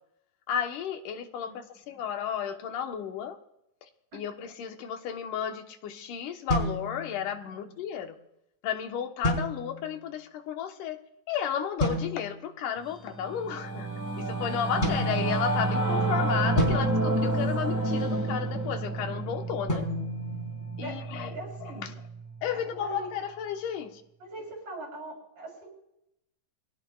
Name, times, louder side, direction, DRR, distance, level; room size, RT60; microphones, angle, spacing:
voice 1, 0.5-3.4 3.8-8.2 8.6-11.0 11.3-13.9 14.2-19.9 20.8-22.0 22.4-24.0, left 8 dB, 85° left, 5 dB, 2.7 m, -33 dB
sound 1, 6.5-7.6 9.2-10.0 11.8-12.5 14.8-15.9 16.6-18.0 19.7-21.2, left 1 dB, 15° left, 3.9 m, -32 dB
Singing / Musical instrument, 12.9-22.6, right 2 dB, 25° right, 0.3 m, -30 dB
voice 2, 20.8-21.9 22.5-23.1 24.2-25.7, right 1 dB, 85° right, -1 dB, 8.9 m, -42 dB
26.0 x 17.5 x 2.4 m, 0.83 s
omnidirectional pair, 3.6 m